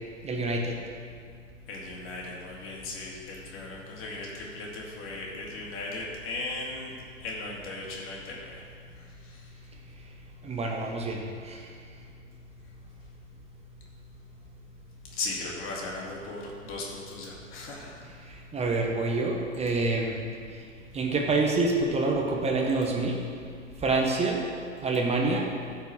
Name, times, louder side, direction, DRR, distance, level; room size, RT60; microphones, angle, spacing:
voice 1, 0.2-0.8 10.4-11.6 18.5-20.2 20.9-23.2 23.8-24.4 24.8-25.5, right 3 dB, 15° right, 0 dB, 1.2 m, -27 dB
voice 2, 1.7-6.9 7.2-8.6 8.9-9.5 15.2-18.0, left 2 dB, 35° left, -3 dB, 2.5 m, -37 dB
14.5 x 5.0 x 4.7 m, 2.3 s
figure-of-eight pair, 90°, 37 cm